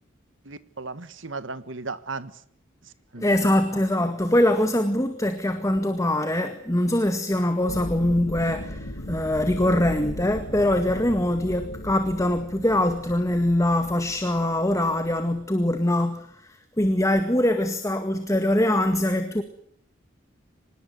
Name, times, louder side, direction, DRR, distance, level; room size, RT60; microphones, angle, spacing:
voice 1, 0.4-2.4 2.8-3.5, right 3 dB, 75° right, 1.6 m, -36 dB
voice 2, 3.2-19.4, left 1 dB, 15° left, 1.9 m, -23 dB
sound 1, 7.7-15.5, left 1 dB, 80° left, 1.9 m, -38 dB
25.5 x 21.0 x 9.5 m
head